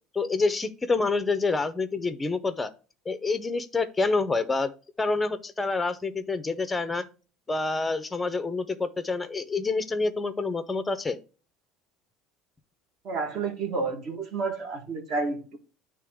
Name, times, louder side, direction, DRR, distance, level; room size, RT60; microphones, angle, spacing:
voice 1, 0.1-2.7 3.1-4.7 5.0-7.1 7.5-11.2, left 3 dB, 10° left, 0.5 m, -27 dB
voice 2, 13.0-15.6, right 4 dB, 40° right, 1.4 m, -30 dB
9.4 x 3.3 x 3.5 m
cardioid pair, 160°, 0 cm